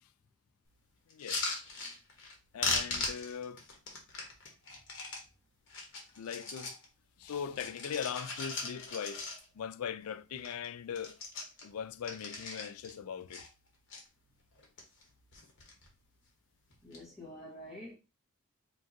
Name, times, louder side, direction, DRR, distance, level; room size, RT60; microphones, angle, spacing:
voice 1, 1.1-1.4 2.5-3.6 6.2-6.7 7.2-9.3 9.5-11.2 11.6-13.5, left 7 dB, 75° left, 0.4 m, -40 dB
sound 1, 1.1-2.3 2.6-5.2 5.7-6.8 7.2-9.7 10.0-10.1 10.4-10.7 10.9-12.9 13.3-14.0 14.5-15.1 15.3-15.9 16.7-17.0, left 3 dB, 55° left, 1.3 m, -39 dB
voice 2, 16.8-18.0, left 1 dB, ahead, 1.6 m, -47 dB
5.0 x 2.6 x 2.9 m
head